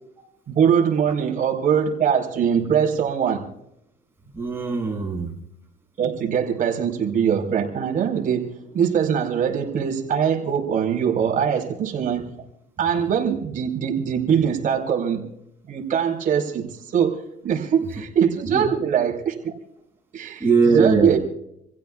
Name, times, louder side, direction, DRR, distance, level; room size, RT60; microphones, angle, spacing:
voice 1, 0.5-3.5 6.0-12.3 12.8-15.3 15.7-17.2 17.4-19.5 20.1-21.2, right 7 dB, 50° right, 1 dB, 4.9 m, -22 dB
voice 2, 4.2-5.4 18.5-18.7 20.4-21.2, right 4 dB, 15° right, -1 dB, 7.1 m, -21 dB
28.5 x 16.0 x 2.5 m, 0.77 s
cardioid pair, 110°, 17 cm